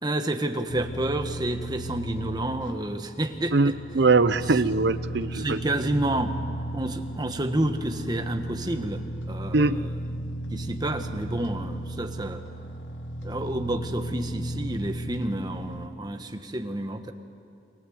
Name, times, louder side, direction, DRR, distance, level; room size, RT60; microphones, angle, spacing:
voice 1, 0.0-3.7 4.5-4.6 5.3-6.4 6.7-9.9 10.5-12.4 13.2-17.1, right 1 dB, 20° right, 6 dB, 1.3 m, -30 dB
sound 1, 0.7-15.9, right 1 dB, 75° left, 1.5 m, -35 dB
voice 2, 3.5-5.6 9.5-9.8, right 3 dB, 60° right, 14 dB, 0.7 m, -22 dB
29.5 x 22.5 x 7.9 m, 2.6 s
head